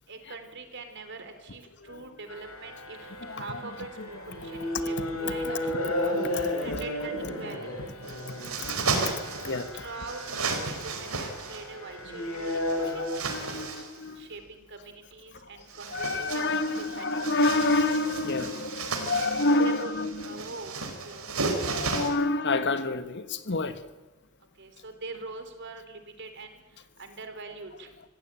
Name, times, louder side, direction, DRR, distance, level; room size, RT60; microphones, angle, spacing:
voice 1, 0.1-5.7 6.6-7.7 9.7-13.6 14.2-16.5 16.8-17.1 19.6-19.9 20.2-20.7 21.0-21.3 21.5-22.1 24.6-26.6 27.0-27.9, right 3 dB, 55° right, 3.6 m, -43 dB
sound 1, 2.3-13.1, left 1 dB, 85° left, 6.2 m, -34 dB
voice 2, 3.2-3.6 4.0-4.1 5.2-6.8 8.6-9.0 9.4-9.9 12.8-14.3 15.9-20.4 21.7-23.8, left 2 dB, 55° left, 1.6 m, -29 dB
sound 2, 8.0-9.7 10.0-11.7 12.4-14.0 15.6-22.1, right 4 dB, 85° right, 4.3 m, -34 dB
25.5 x 16.5 x 9.1 m
head